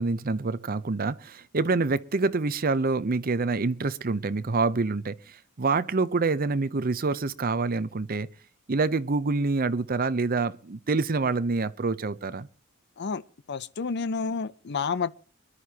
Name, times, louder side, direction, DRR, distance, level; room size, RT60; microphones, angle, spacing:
voice 1, 0.0-8.3 8.7-12.5, right 3 dB, 40° right, 0.7 m, -26 dB
voice 2, 13.5-15.2, left 5 dB, 50° left, 0.5 m, -30 dB
25.5 x 11.5 x 2.9 m
head